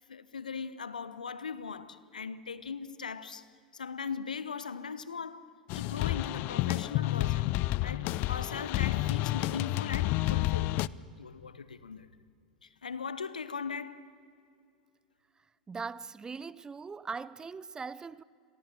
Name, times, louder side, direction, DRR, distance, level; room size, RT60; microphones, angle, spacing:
voice 1, 0.1-3.5 3.7-7.5 7.8-10.9 11.2-12.1 12.6-14.1, left 5 dB, 80° left, 1.0 m, -39 dB
sound 1, 5.7-10.9, left 18 dB, 45° left, 0.5 m, -30 dB
voice 2, 15.7-18.2, right 5 dB, 15° right, 0.6 m, -40 dB
29.5 x 22.0 x 6.9 m
figure-of-eight pair, 85°, 4 cm